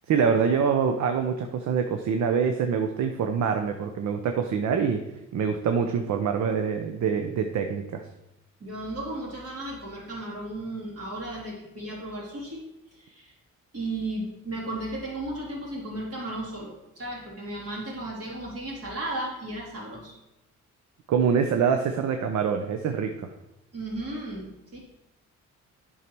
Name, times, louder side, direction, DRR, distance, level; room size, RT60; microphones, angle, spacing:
voice 1, 0.1-5.0 5.3-8.0 21.1-23.3, right 6 dB, 65° right, 6 dB, 0.7 m, -25 dB
voice 2, 8.6-12.6 12.9-13.3 13.7-20.2 23.7-24.8, right 1 dB, 50° right, -3 dB, 3.2 m, -35 dB
8.3 x 5.6 x 4.6 m, 0.90 s
cardioid pair, 90°, 30 cm